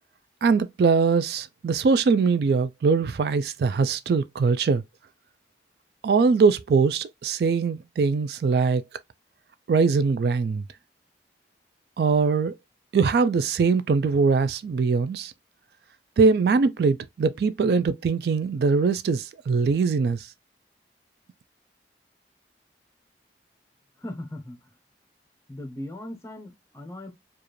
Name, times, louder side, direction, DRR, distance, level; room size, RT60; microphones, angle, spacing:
voice 1, 0.4-4.8 6.0-8.8 9.7-10.6 12.0-12.5 12.9-15.3 16.2-20.3, right 4 dB, 60° right, 0.3 m, -22 dB
voice 2, 24.0-24.6 25.5-27.1, left 1 dB, 15° left, 0.8 m, -38 dB
4.8 x 2.4 x 3.0 m
head